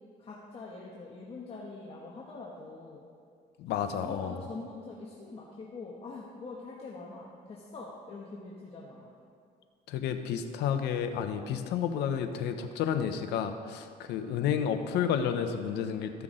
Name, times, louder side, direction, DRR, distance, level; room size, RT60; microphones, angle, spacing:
voice 1, 0.2-3.0 4.0-9.1, left 3 dB, 35° left, -3 dB, 1.2 m, -44 dB
voice 2, 3.6-4.4 9.9-16.2, left 8 dB, 80° left, 7 dB, 0.8 m, -31 dB
15.0 x 6.0 x 3.8 m, 2.2 s
cardioid pair, 110°, 17 cm